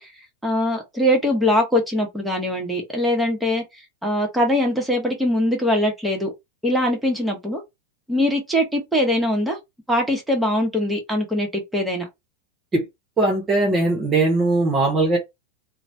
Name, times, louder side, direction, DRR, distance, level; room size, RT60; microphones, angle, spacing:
voice 1, 0.4-3.6 4.0-6.3 6.6-7.6 8.1-9.6 9.9-12.1, left 1 dB, 5° right, 1.4 m, -22 dB
voice 2, 13.2-15.2, right 2 dB, 20° right, 1.3 m, -19 dB
2.9 x 2.3 x 2.8 m
figure-of-eight pair, 90°, 0 cm